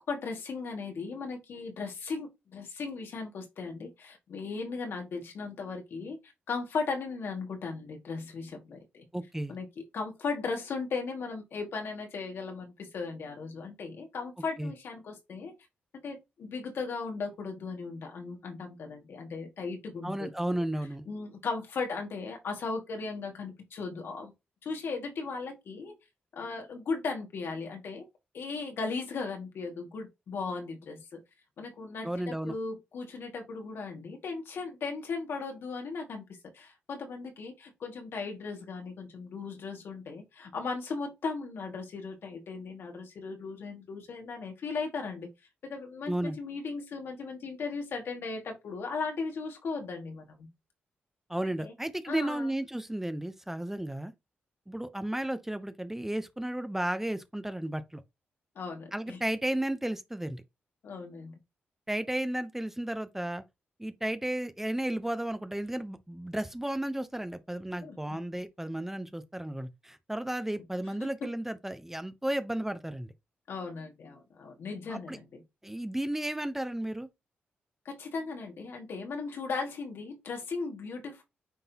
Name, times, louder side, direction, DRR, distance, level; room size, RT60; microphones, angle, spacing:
voice 1, 0.1-6.2 6.5-9.0 9.5-9.7 9.9-15.5 16.0-20.3 20.6-20.7 21.1-24.3 24.6-25.9 26.3-28.1 28.3-31.2 31.6-36.2 36.5-45.3 45.6-50.5 51.6-51.7 52.1-52.5 58.6-59.2 60.8-61.3 67.8-68.2 71.0-71.3 73.5-75.4 77.9-81.2, left 4 dB, 70° left, 2.1 m, -37 dB
voice 2, 9.1-9.5 14.6-14.7 20.0-21.1 32.0-32.5 46.1-46.4 51.3-54.1 54.7-58.0 58.9-60.4 61.9-63.4 63.8-73.1 74.9-75.2 75.6-77.1, right 1 dB, 10° right, 0.8 m, -33 dB
9.2 x 3.8 x 2.9 m
cardioid pair, 70°, 4 cm